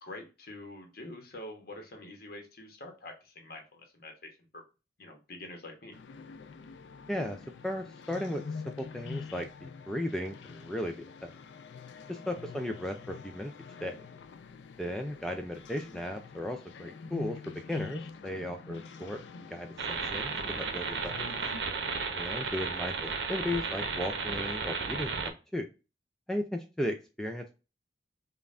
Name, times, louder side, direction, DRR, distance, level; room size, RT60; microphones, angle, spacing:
voice 1, 0.0-4.6 5.0-6.0 12.3-12.5 18.9-19.0 22.4-22.7, left 1 dB, 60° left, 3 dB, 0.9 m, -46 dB
sound 1, 5.9-21.6, left 5 dB, 90° left, 0.4 m, -46 dB
voice 2, 7.6-8.4 8.8-11.0 11.2-11.3 12.1-13.5 13.8-14.0 14.8-19.2 19.5-21.2 22.1-25.7 26.3-27.4, left 1 dB, 5° left, 4 dB, 0.3 m, -36 dB
sound 2, 19.8-25.3, right 5 dB, 85° right, 0.7 m, -34 dB
5.2 x 2.3 x 2.4 m, 0.30 s
head